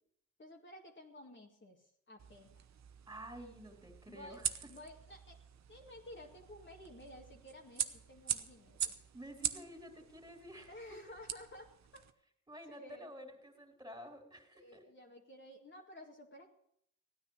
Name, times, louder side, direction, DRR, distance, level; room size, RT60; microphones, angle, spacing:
voice 1, 0.4-2.6 4.1-4.4 4.7-5.4 5.7-8.9 10.7-12.0 12.7-13.1 14.5-16.5, left 1 dB, 35° left, 0 dB, 2.2 m, -53 dB
sound 1, 2.2-12.1, right 9 dB, 55° right, 1.0 m, -43 dB
voice 2, 3.1-4.7 9.1-11.0 12.5-14.8, equal, 15° right, 4 dB, 3.5 m, -51 dB
15.5 x 9.7 x 6.4 m, 0.71 s
supercardioid pair, 65°, 32 cm